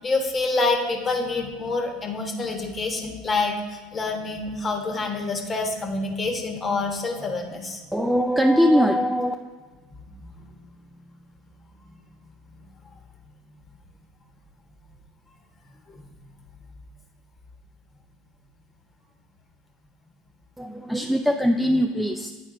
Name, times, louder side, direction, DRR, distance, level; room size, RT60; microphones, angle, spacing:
voice 1, 0.0-7.8 10.0-10.6 12.6-12.7 15.9-16.0, left 3 dB, 30° left, 2 dB, 1.1 m, -27 dB
voice 2, 7.9-9.3 20.6-22.3, equal, ahead, 4 dB, 0.4 m, -21 dB
8.9 x 4.2 x 3.8 m, 1.4 s
hypercardioid pair, 90°, 0 cm